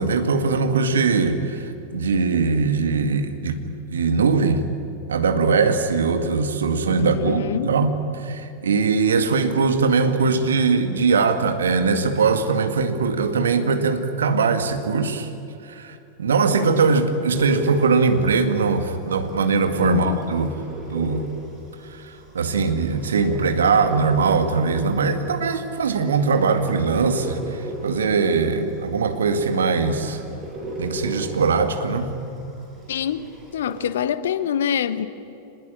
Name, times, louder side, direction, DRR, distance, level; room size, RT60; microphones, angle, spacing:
voice 1, 0.0-4.6 5.1-7.9 8.2-15.3 15.7-20.5 20.9-21.3 21.9-22.0 22.3-30.2 30.8-32.1, right 4 dB, 65° right, 2.1 m, -21 dB
voice 2, 7.0-7.8 19.8-20.3 32.9-33.2 33.5-35.1, left 9 dB, 60° left, 1.1 m, -25 dB
sound 1, 17.3-33.9, right 1 dB, 25° right, 7.5 m, -38 dB
25.5 x 20.5 x 9.9 m
figure-of-eight pair, 90°, 0 cm